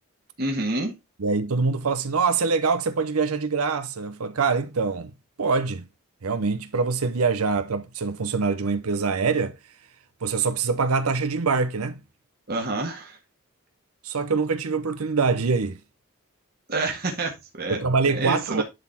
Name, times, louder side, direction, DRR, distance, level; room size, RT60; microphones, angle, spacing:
voice 1, 0.4-0.9 12.5-13.2 16.7-17.8 18.1-18.6, right 2 dB, 45° right, 1.8 m, -28 dB
voice 2, 1.2-5.1 5.4-5.8 6.2-9.5 10.2-12.0 14.0-15.8 17.7-18.6, right 4 dB, 85° right, 0.7 m, -24 dB
11.0 x 4.1 x 4.2 m
head